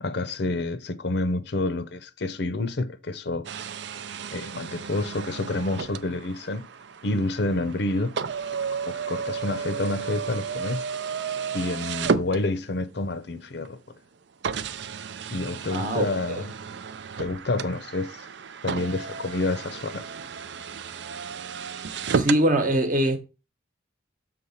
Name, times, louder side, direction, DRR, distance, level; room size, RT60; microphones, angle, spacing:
voice 1, 0.0-3.5 4.3-6.6 7.0-8.1 8.9-10.9 11.5-13.8 15.3-16.5 17.2-18.3 18.6-20.1, left 2 dB, 60° left, 0.7 m, -28 dB
sound 1, 3.4-12.9 13.6-13.7 14.4-22.5, right 6 dB, 65° right, 0.5 m, -33 dB
voice 2, 15.7-16.0 22.0-23.2, right 1 dB, 45° right, 1.1 m, -22 dB
6.8 x 3.8 x 5.7 m
head